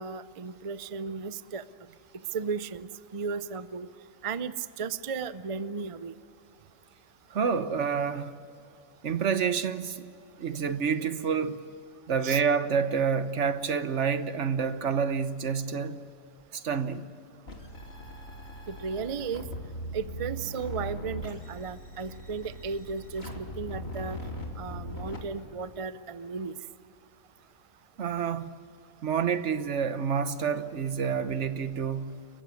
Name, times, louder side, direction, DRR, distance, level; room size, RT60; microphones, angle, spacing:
voice 1, 0.0-1.6 2.3-3.9 4.2-6.1 12.2-12.4 18.7-19.4 19.9-24.2 24.6-26.5, right 5 dB, 40° right, 0.5 m, -35 dB
voice 2, 7.3-8.3 9.0-10.1 10.4-11.6 12.1-16.0 16.5-17.0 28.0-28.5 29.0-32.2, right 6 dB, 65° right, 1.3 m, -28 dB
sound 1, 17.5-25.2, equal, 50° left, 3.4 m, -39 dB
29.0 x 15.5 x 9.6 m
omnidirectional pair, 1.3 m